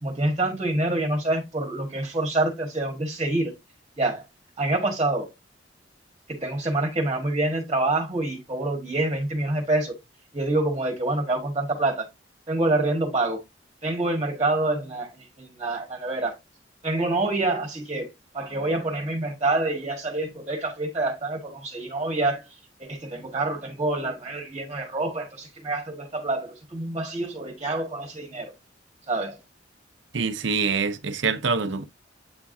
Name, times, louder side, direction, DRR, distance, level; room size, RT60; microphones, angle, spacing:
voice 1, 0.0-3.5 4.0-4.3 4.6-5.3 6.4-9.9 10.3-12.1 12.5-13.4 13.8-16.4 16.8-22.5 22.8-28.5 29.1-29.4, right 2 dB, 25° right, 1.6 m, -26 dB
voice 2, 30.1-31.8, right 5 dB, 75° right, 0.7 m, -25 dB
8.4 x 4.7 x 2.7 m
head